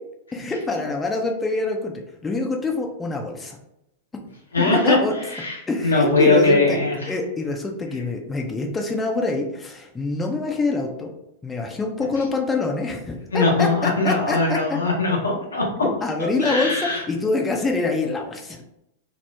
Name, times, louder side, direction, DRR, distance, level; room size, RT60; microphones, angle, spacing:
voice 1, 0.3-3.6 4.6-5.1 5.7-11.1 11.4-14.8 16.0-18.6, left 3 dB, 15° left, 1 dB, 0.5 m, -25 dB
voice 2, 4.5-5.0 5.3-5.6 5.8-6.9 13.3-15.6 16.4-17.0, left 2 dB, 85° left, -3 dB, 0.9 m, -20 dB
2.9 x 2.0 x 3.3 m, 0.82 s
figure-of-eight pair, 100°, 0 cm